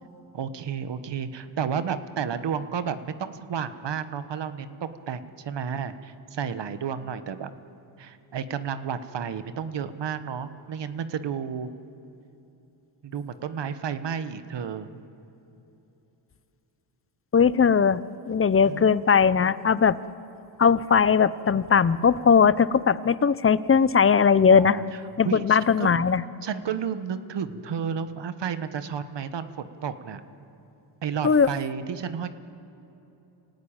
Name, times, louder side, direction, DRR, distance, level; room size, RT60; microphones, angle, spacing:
voice 1, 0.3-7.5 8.0-11.7 13.0-14.9 18.6-18.9 24.5-24.8 25.2-26.0 26.4-30.2 31.0-32.3, right 7 dB, 55° right, 11 dB, 1.4 m, -32 dB
voice 2, 17.3-20.0 20.6-24.8 25.2-26.2 31.2-31.5, left 6 dB, 25° left, 16 dB, 0.8 m, -19 dB
26.5 x 18.0 x 8.9 m, 3.0 s
cardioid pair, 70°, 50 cm